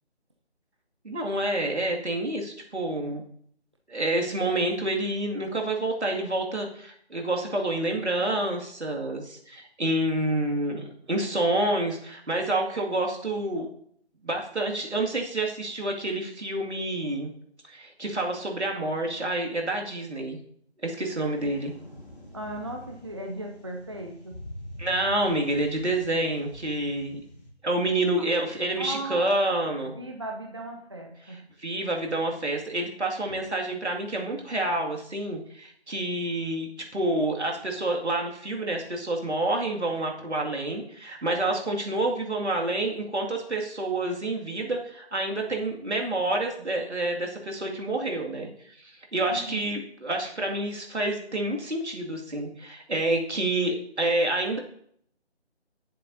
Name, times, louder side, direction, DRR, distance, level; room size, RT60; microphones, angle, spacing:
voice 1, 1.0-3.2 3.9-13.7 14.2-17.3 17.7-20.4 20.8-21.7 24.8-27.2 27.6-29.9 31.6-54.6, right 1 dB, 80° right, 0 dB, 2.3 m, -28 dB
sound 1, 21.3-27.5, left 1 dB, 50° left, 4.2 m, -45 dB
voice 2, 22.3-24.4 28.2-28.3 28.8-29.3 29.9-31.4 33.3-33.4 49.3-49.6, right 1 dB, 25° right, 2 dB, 0.6 m, -37 dB
17.0 x 7.5 x 2.7 m, 0.64 s
figure-of-eight pair, 160°, 33 cm